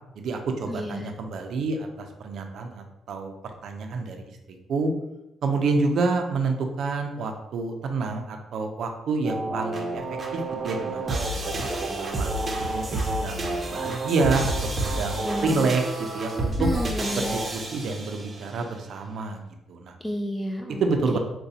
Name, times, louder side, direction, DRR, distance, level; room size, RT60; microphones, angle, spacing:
voice 1, 0.2-4.3 4.7-4.9 5.4-10.0 10.3-12.3 12.7-15.8 16.1-16.7 17.1-19.4 19.7-20.0 20.8-21.2, right 3 dB, 70° right, 5 dB, 0.5 m, -28 dB
voice 2, 0.7-1.1 15.2-15.7 16.6-17.4 20.0-20.9 21.1-21.2, equal, 10° left, 1 dB, 0.3 m, -30 dB
sound 1, 9.2-18.5, right 2 dB, 30° right, 0.7 m, -29 dB
4.9 x 2.2 x 2.7 m, 0.91 s
cardioid pair, 90°, 0 cm